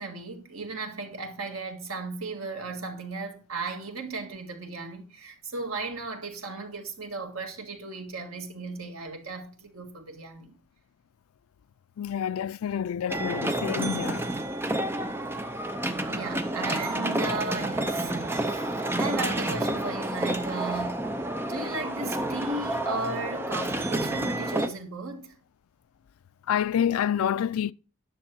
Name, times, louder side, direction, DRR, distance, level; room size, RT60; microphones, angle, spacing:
voice 1, 0.0-10.6 16.1-21.1 21.5-25.3, right 3 dB, 80° right, 1.8 m, -35 dB
voice 2, 12.0-14.3 26.5-27.7, left 9 dB, 90° left, 0.3 m, -28 dB
sound 1, 13.1-24.7, right 1 dB, 10° right, 0.6 m, -29 dB
10.0 x 6.5 x 4.5 m
head